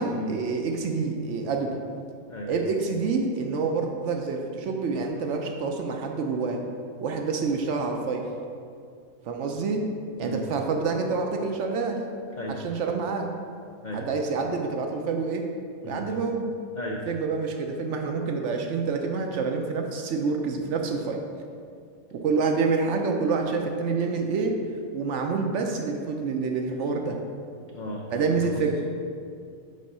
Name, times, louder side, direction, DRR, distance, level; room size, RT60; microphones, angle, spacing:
voice 1, 0.0-1.8 2.5-6.6 7.0-8.3 9.2-9.8 10.2-12.0 12.5-13.3 13.9-15.4 15.8-16.5 17.1-21.2 22.1-24.6 24.9-27.2 28.1-28.8, right 4 dB, 65° right, 3 dB, 0.8 m, -27 dB
voice 2, 27.7-28.5, left 1 dB, 80° left, -1 dB, 0.4 m, -35 dB
5.3 x 3.7 x 5.4 m, 2.3 s
omnidirectional pair, 1.5 m